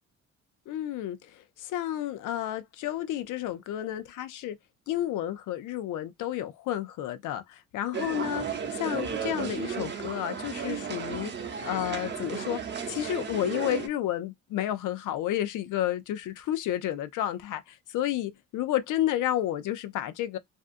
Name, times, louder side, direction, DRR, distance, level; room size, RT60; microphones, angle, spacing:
voice 1, 0.7-4.6 4.9-11.3 11.6-20.4, left 12 dB, 80° left, 0.5 m, -31 dB
sound 1, 7.9-13.9, right 6 dB, 35° right, 0.8 m, -34 dB
2.6 x 2.3 x 2.5 m
cardioid pair, 90°, 30 cm